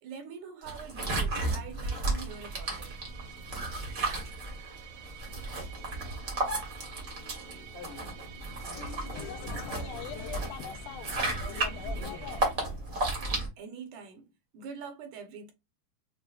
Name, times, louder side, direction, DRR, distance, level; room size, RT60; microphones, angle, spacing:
voice 1, 0.0-3.0 13.6-15.5, right 6 dB, 75° right, 2.2 m, -44 dB
sound 1, 0.6-13.5, right 2 dB, 50° right, 1.0 m, -34 dB
Musical instrument, 2.3-12.5, right 10 dB, 90° right, 3.0 m, -50 dB
voice 2, 7.7-8.1 8.6-10.5 11.4-12.6, left 6 dB, 65° left, 1.0 m, -50 dB
sound 2, 8.7-12.9, left 9 dB, 85° left, 2.0 m, -42 dB
6.1 x 2.1 x 2.3 m
omnidirectional pair, 3.7 m